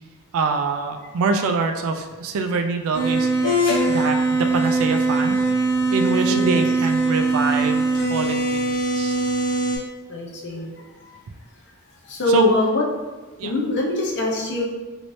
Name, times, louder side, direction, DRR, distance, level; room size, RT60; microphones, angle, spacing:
voice 1, 0.3-3.3 3.8-5.4 5.9-9.2 12.3-12.5 13.4-13.5, right 4 dB, 65° right, 6 dB, 0.3 m, -24 dB
sound 1, 2.9-9.8, right 2 dB, 90° left, 1.2 m, -21 dB
voice 2, 6.3-6.6 10.1-10.8 12.0-12.8 13.4-14.6, left 1 dB, 55° left, -2 dB, 0.7 m, -23 dB
3.0 x 2.7 x 3.1 m, 1.2 s
head